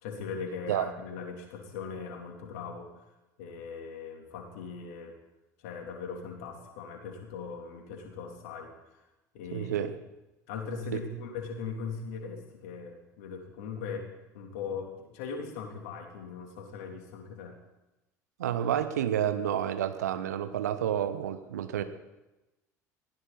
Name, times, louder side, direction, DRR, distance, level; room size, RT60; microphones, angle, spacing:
voice 1, 0.0-2.9 3.4-5.2 5.6-9.0 9.3-9.7 10.5-14.1 14.3-17.6, left 5 dB, 60° left, 2 dB, 3.3 m, -39 dB
voice 2, 9.5-9.9 18.4-21.8, right 10 dB, 70° right, 10 dB, 1.2 m, -29 dB
20.5 x 16.0 x 4.2 m, 1.0 s
figure-of-eight pair, 65°, 9 cm